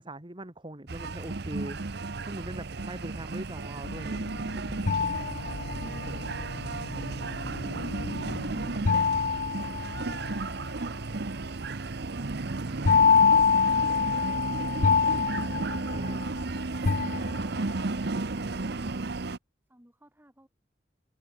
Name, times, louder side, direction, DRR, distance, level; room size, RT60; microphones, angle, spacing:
voice 1, 0.0-1.8 2.3-4.3 15.5-16.2, right 1 dB, 25° right, 1.8 m, -41 dB
sound 1, 0.9-19.4, right 3 dB, 65° right, 0.9 m, -34 dB
sound 2, 3.8-8.8, left 2 dB, 85° left, 1.0 m, -41 dB
sound 3, 4.9-6.1 8.9-10.5 12.9-16.4 16.9-17.8, left 5 dB, 45° left, 0.6 m, -25 dB
voice 2, 19.7-20.5, equal, 10° right, 7.8 m, -57 dB
open air
head